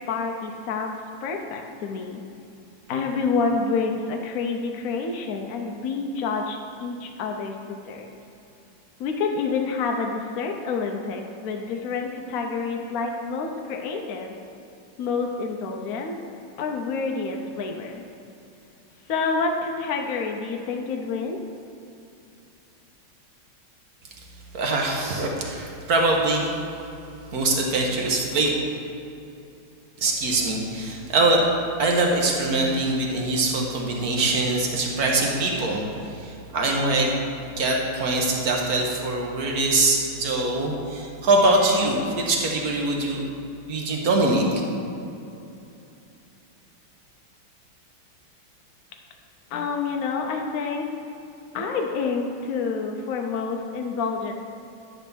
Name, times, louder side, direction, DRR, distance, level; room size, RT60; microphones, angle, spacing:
voice 1, 0.1-2.2 2.9-7.5 7.9-8.1 9.0-14.3 15.0-16.2 16.6-18.0 19.1-21.4 49.5-50.9 51.5-54.3, left 4 dB, 70° left, 2 dB, 0.8 m, -28 dB
voice 2, 24.5-26.5 27.3-28.5 30.0-31.5 31.8-35.8 36.2-37.1 37.5-43.2 43.7-44.4, right 2 dB, 50° right, 0 dB, 1.5 m, -23 dB
10.5 x 4.2 x 7.0 m, 2.7 s
omnidirectional pair, 2.3 m